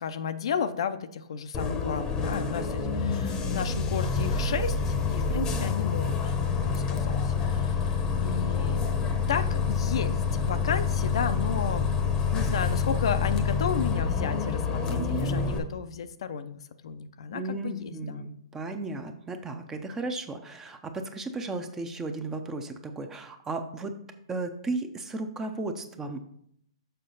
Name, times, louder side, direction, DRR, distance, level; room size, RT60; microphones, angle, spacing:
voice 1, 0.0-8.8 9.3-11.9 12.3-18.3, left 7 dB, 65° left, 10 dB, 0.5 m, -33 dB
Bus, 1.5-15.6, left 5 dB, 20° left, 0.9 m, -27 dB
voice 2, 17.3-24.0 24.3-26.2, right 2 dB, 15° right, 7 dB, 0.7 m, -35 dB
6.7 x 5.4 x 3.9 m, 0.69 s
hypercardioid pair, 135°, 3 cm